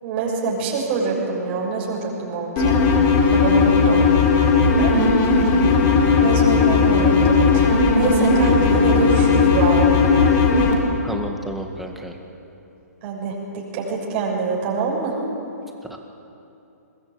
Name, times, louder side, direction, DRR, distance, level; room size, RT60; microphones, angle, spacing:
voice 1, 0.0-3.0 3.3-4.0 4.8-5.0 6.2-10.0 13.0-15.2, right 4 dB, 40° right, -3 dB, 7.0 m, -25 dB
sound 1, 2.6-10.7, left 4 dB, 30° left, 3.7 m, -16 dB
voice 2, 11.0-12.2 15.9-16.0, equal, ahead, 2 dB, 2.0 m, -31 dB
22.0 x 20.0 x 8.8 m, 2.8 s
hypercardioid pair, 135°, 9 cm